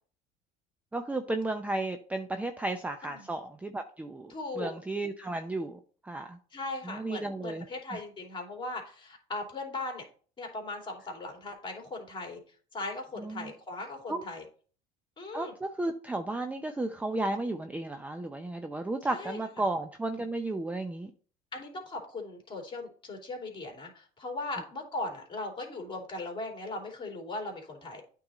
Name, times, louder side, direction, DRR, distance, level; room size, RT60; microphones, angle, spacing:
voice 1, 0.9-6.4 6.9-7.6 13.2-13.5 14.1-14.2 15.3-21.1, right 2 dB, 10° right, 6 dB, 0.6 m, -34 dB
voice 2, 4.3-4.7 6.5-10.0 10.4-12.4 12.7-14.4 15.2-15.5 19.0-19.4 21.5-28.0, left 2 dB, 25° left, 1 dB, 2.9 m, -38 dB
8.7 x 3.8 x 4.1 m, 0.42 s
supercardioid pair, 90°, 19 cm